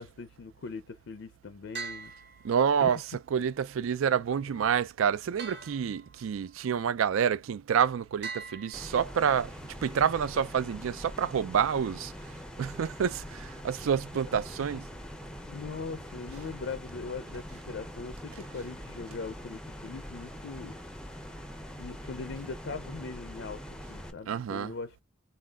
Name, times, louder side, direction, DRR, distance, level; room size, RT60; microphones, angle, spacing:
voice 1, 0.0-2.1 2.8-3.0 15.5-20.8 21.8-23.6 23.9-25.0, left 4 dB, 60° left, 0.4 m, -40 dB
sound 1, 1.7-3.0 5.4-6.5 8.2-9.5, right 5 dB, 50° right, 1.4 m, -43 dB
voice 2, 2.4-3.0 3.3-9.5 9.8-14.8 24.3-24.7, right 7 dB, 75° right, 0.4 m, -28 dB
sound 2, 8.7-24.1, equal, 5° left, 0.5 m, -43 dB
4.1 x 3.8 x 2.3 m
head